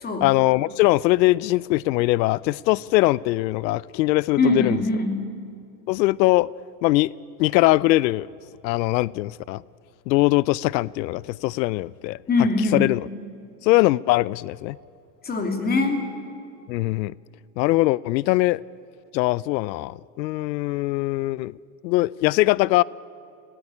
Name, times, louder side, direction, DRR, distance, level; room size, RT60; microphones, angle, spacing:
voice 1, 0.2-4.8 5.9-6.5 6.8-7.1 7.4-8.3 8.6-9.6 10.1-12.2 12.6-13.1 13.6-14.8 16.7-17.1 17.6-18.6 19.1-21.5 21.8-22.8, left 19 dB, 90° left, 0.6 m, -21 dB
voice 2, 4.4-5.2 12.3-12.9 15.2-16.0, left 3 dB, 20° left, 2.9 m, -22 dB
22.0 x 17.5 x 9.9 m
supercardioid pair, 150°, 50 cm